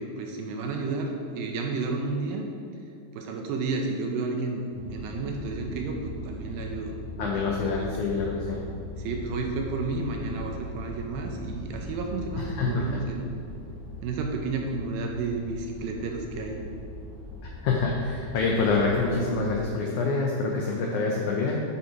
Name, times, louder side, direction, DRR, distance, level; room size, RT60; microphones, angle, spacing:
voice 1, 0.0-2.4 3.1-4.6 4.9-7.0 7.8-8.0 9.0-13.4 14.0-16.6, right 3 dB, 75° right, 2 dB, 2.3 m, -31 dB
sound 1, 4.7-19.6, left 1 dB, 50° left, 1.7 m, -39 dB
voice 2, 7.2-8.6 12.4-12.8 17.6-21.6, left 4 dB, 85° left, -1 dB, 1.7 m, -26 dB
9.3 x 5.6 x 4.8 m, 2.4 s
omnidirectional pair, 4.5 m